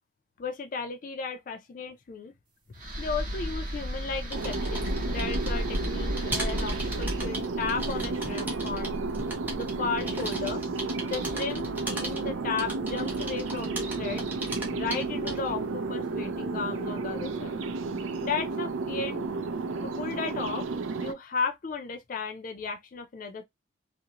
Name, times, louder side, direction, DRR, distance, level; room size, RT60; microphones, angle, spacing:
voice 1, 0.4-2.3 3.0-9.0 9.5-10.6 11.1-14.2 14.7-17.6 18.2-19.2 19.8-20.7 21.0-23.4, left 5 dB, 40° left, 0.3 m, -34 dB
sound 1, 2.8-9.9, equal, 40° right, 0.8 m, -34 dB
sound 2, 4.2-15.6, right 2 dB, 10° right, 0.6 m, -39 dB
sound 3, 4.3-21.1, right 3 dB, 80° right, 0.4 m, -32 dB
2.4 x 2.0 x 2.8 m
head